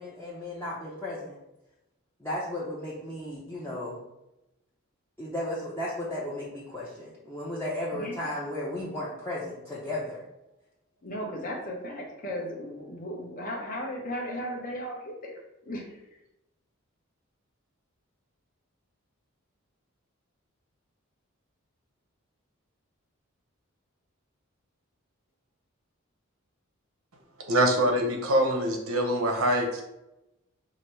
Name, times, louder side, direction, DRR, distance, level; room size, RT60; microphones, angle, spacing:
voice 1, 0.0-1.4 2.2-4.0 5.2-10.2, left 1 dB, 10° left, -8 dB, 0.6 m, -34 dB
voice 2, 7.9-8.3 11.0-15.3 15.7-16.0, equal, 40° left, -1 dB, 0.8 m, -36 dB
voice 3, 27.5-29.8, right 1 dB, 80° right, 2 dB, 0.9 m, -24 dB
5.0 x 2.0 x 4.3 m, 0.91 s
head